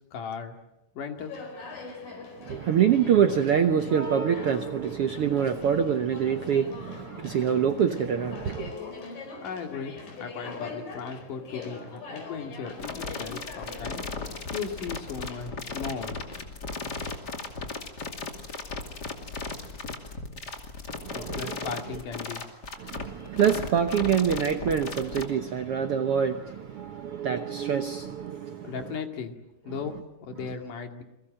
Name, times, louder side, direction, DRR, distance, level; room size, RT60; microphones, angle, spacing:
voice 1, 0.1-0.6 1.0-1.3 9.4-16.2 21.1-22.5 28.6-29.4 29.6-31.0, left 6 dB, 70° left, 5 dB, 3.7 m, -37 dB
Conversation, 1.2-16.4, left 3 dB, 85° left, 6.3 m, -43 dB
voice 2, 2.5-8.7 21.0-21.6 22.8-28.7, right 8 dB, 65° right, 7 dB, 1.5 m, -25 dB
sound 1, 12.8-25.2, left 3 dB, 30° left, 2.8 m, -36 dB
28.5 x 23.0 x 7.7 m, 0.94 s
omnidirectional pair, 3.9 m